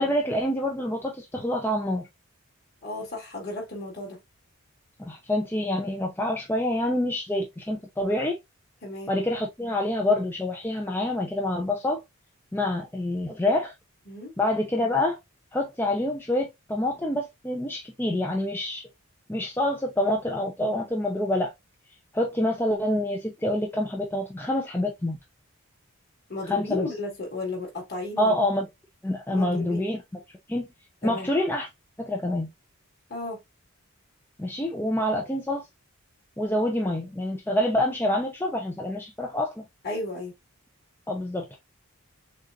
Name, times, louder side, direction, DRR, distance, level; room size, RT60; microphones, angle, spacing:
voice 1, 0.0-2.1 5.1-8.4 9.1-12.0 12.5-13.7 14.4-15.2 15.5-18.9 19.3-21.5 22.1-25.2 26.4-26.9 28.2-28.7 29.0-30.0 30.5-30.7 31.0-31.7 32.0-32.5 34.4-35.6 36.4-39.6 41.1-41.6, left 1 dB, 10° left, 0.6 m, -27 dB
voice 2, 2.8-4.2 8.8-9.1 14.1-14.3 26.3-28.4 29.3-29.8 31.0-31.3 33.1-33.4 39.8-40.3, left 2 dB, 45° left, 2.5 m, -34 dB
6.5 x 2.5 x 2.5 m
head